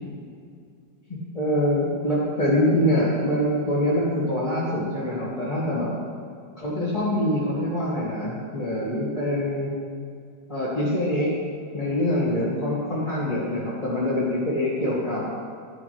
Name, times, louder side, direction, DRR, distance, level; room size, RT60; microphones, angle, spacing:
voice 1, 1.3-5.9 6.6-9.7 10.5-11.3 11.7-15.2, left 1 dB, 20° left, -7 dB, 1.8 m, -24 dB
11.0 x 5.1 x 3.4 m, 2.2 s
omnidirectional pair, 1.9 m